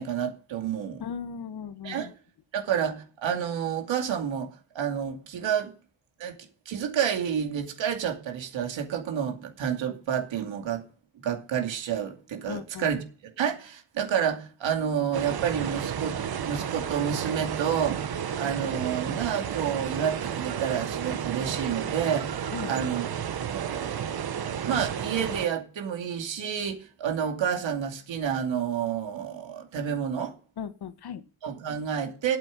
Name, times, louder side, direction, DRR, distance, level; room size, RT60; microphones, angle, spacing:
voice 1, 0.0-1.0 1.8-2.1 2.5-5.7 6.2-6.4 6.7-10.8 11.2-16.2 16.4-18.1 18.4-24.2 24.7-30.3 31.4-32.4, right 8 dB, 70° right, 2.6 m, -29 dB
voice 2, 1.0-2.0 12.5-12.8 22.5-22.7 30.6-31.2, left 7 dB, 55° left, 1.3 m, -36 dB
sound 1, 15.1-25.5, right 8 dB, 50° right, 1.2 m, -32 dB
8.9 x 7.7 x 7.3 m
cardioid pair, 120°, 47 cm